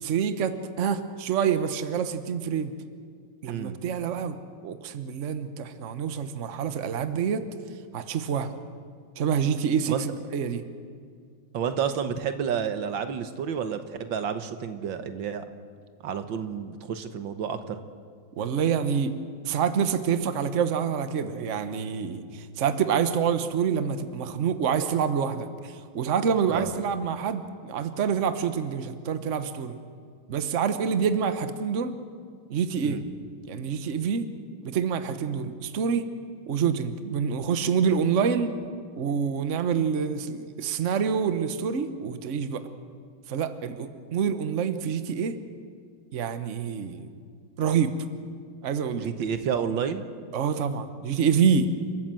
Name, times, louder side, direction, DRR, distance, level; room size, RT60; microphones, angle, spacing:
voice 1, 0.0-2.7 3.4-4.4 4.6-7.4 7.9-8.5 9.2-10.6 18.4-19.1 19.4-29.8 30.3-32.0 32.5-33.0 33.5-34.3 34.6-36.1 36.5-38.6 39.0-42.6 43.3-45.4 46.1-47.1 47.6-47.9 48.6-49.1 50.3-51.7, right 7 dB, 45° right, 9 dB, 1.2 m, -27 dB
voice 2, 3.5-3.8 9.9-10.0 11.5-15.5 16.0-17.8 26.5-26.7 32.8-33.0 49.0-50.0, right 7 dB, 85° right, 9 dB, 1.9 m, -30 dB
29.5 x 14.0 x 7.7 m, 2.1 s
omnidirectional pair, 2.1 m